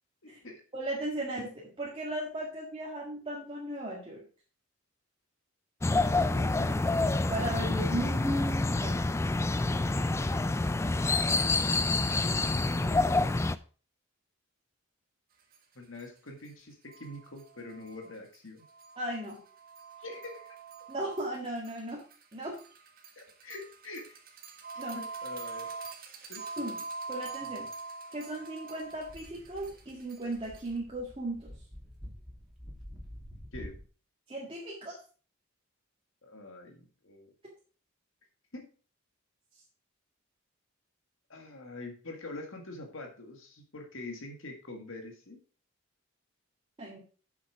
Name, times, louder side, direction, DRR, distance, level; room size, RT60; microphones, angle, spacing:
voice 1, 0.2-0.6 6.3-6.8 15.8-18.7 20.0-20.6 23.2-24.2 24.7-25.7 26.3-26.6 33.5-33.8 36.2-37.3 38.5-38.7 41.3-45.4, left 2 dB, 70° left, 3 dB, 1.8 m, -45 dB
voice 2, 0.7-4.2 7.3-9.0 19.0-19.4 20.9-22.0 22.3-22.6 24.8-25.0 26.6-26.8 27.1-27.7 28.1-31.5 34.3-35.0 46.8-47.0, right 1 dB, 25° right, -4 dB, 1.8 m, -36 dB
sound 1, 5.8-13.6, left 2 dB, 15° left, 0.3 m, -27 dB
sound 2, 15.5-15.6 16.0-16.1 16.4-16.5 16.9-30.8, right 4 dB, 45° right, 1.6 m, -44 dB
sound 3, 28.9-33.8, equal, ahead, 2.6 m, -48 dB
8.0 x 6.5 x 4.9 m, 0.38 s
head